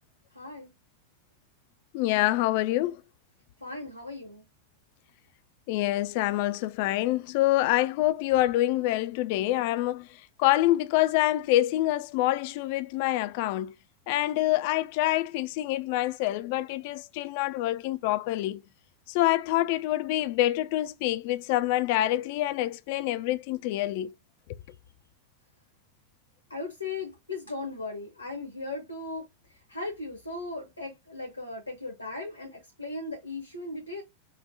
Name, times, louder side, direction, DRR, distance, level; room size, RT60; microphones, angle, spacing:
voice 1, 0.3-0.7 3.6-4.4 26.5-34.0, left 3 dB, 85° left, 0.9 m, -37 dB
voice 2, 1.9-3.0 5.7-10.1 10.4-13.7 14.1-18.6 19.1-24.1, left 15 dB, 50° left, 0.3 m, -26 dB
5.4 x 2.1 x 2.7 m
figure-of-eight pair, 90°, 0 cm